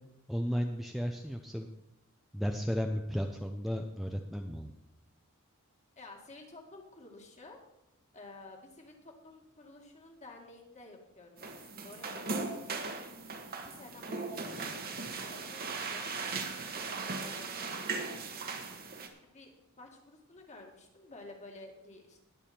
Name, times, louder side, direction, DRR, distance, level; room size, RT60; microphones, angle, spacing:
voice 1, 0.3-1.7 2.3-4.7, equal, ahead, 3 dB, 0.6 m, -34 dB
voice 2, 6.0-7.6 8.1-12.9 13.6-16.1 16.9-17.6 19.3-22.2, left 2 dB, 35° left, 1 dB, 2.1 m, -52 dB
sound 1, 11.4-19.1, right 4 dB, 45° right, 1.4 m, -38 dB
19.5 x 7.1 x 4.4 m, 0.88 s
head